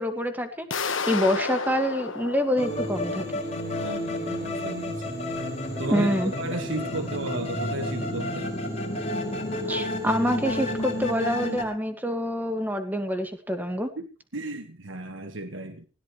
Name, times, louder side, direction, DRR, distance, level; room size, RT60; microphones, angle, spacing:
voice 1, 0.0-3.3 5.9-6.3 9.7-13.9, equal, 10° right, 7 dB, 1.8 m, -26 dB
sound 1, 0.7-3.5, left 5 dB, 90° left, 1.6 m, -32 dB
sound 2, 2.6-11.6, left 1 dB, 35° left, 5.0 m, -31 dB
voice 2, 3.8-5.2 5.8-8.6 14.0-14.1 14.3-15.9, right 2 dB, 85° right, 7 dB, 1.6 m, -34 dB
20.0 x 17.0 x 3.2 m, 0.34 s
head